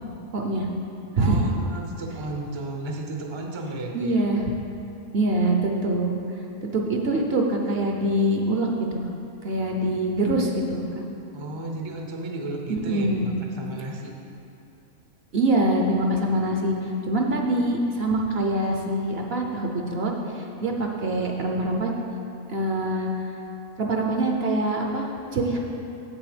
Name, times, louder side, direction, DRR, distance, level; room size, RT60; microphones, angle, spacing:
voice 1, 0.3-0.7 1.2-1.5 3.9-4.4 5.1-6.2 6.6-9.0 9.4-10.9 12.7-13.3 15.3-16.7 17.1-21.9 22.5-23.1 23.8-25.6, right 1 dB, 55° right, 1 dB, 0.8 m, -24 dB
voice 2, 1.2-4.2 11.3-14.1, right 2 dB, 30° right, 1 dB, 0.5 m, -33 dB
7.7 x 6.9 x 5.0 m, 2.7 s
omnidirectional pair, 1.5 m